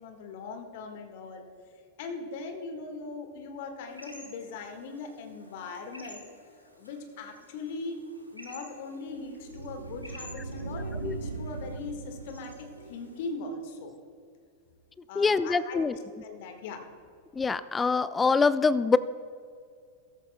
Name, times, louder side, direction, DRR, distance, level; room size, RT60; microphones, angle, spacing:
voice 1, 0.0-1.4 2.0-6.2 6.8-13.9 15.1-16.8, left 3 dB, 50° left, 5 dB, 1.6 m, -40 dB
sound 1, 3.9-13.3, equal, 90° left, 1.4 m, -52 dB
sound 2, 7.7-13.3, right 3 dB, 80° right, 0.6 m, -40 dB
voice 2, 15.2-15.9 17.3-19.0, left 4 dB, 15° left, 16 dB, 0.3 m, -24 dB
15.0 x 14.0 x 2.2 m, 2.2 s
figure-of-eight pair, 90°, 0 cm